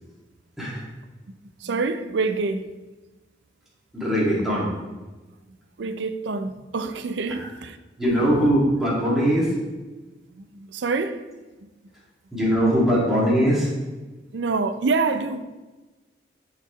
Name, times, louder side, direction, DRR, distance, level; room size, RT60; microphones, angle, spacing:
voice 1, 1.6-2.7 5.8-7.8 10.3-11.2 14.3-15.4, right 4 dB, 85° right, 0.5 m, -26 dB
voice 2, 3.9-4.7 8.0-9.5 12.3-13.7, equal, ahead, 2.0 m, -21 dB
12.0 x 4.1 x 3.0 m
head